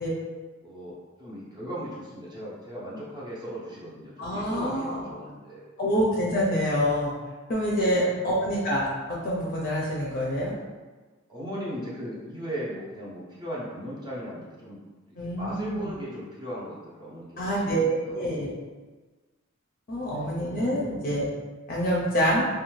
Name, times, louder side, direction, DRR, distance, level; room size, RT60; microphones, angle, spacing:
voice 1, 0.6-5.6 7.7-8.2 11.3-14.8 15.2-18.4 19.9-20.3 20.7-20.8, equal, 20° right, -7 dB, 0.6 m, -38 dB
voice 2, 4.2-5.1 5.8-7.1 7.5-10.5 15.2-15.9 17.4-18.5 19.9-21.3 21.7-22.5, equal, 45° left, -5 dB, 0.5 m, -26 dB
2.6 x 2.2 x 3.1 m, 1.3 s
head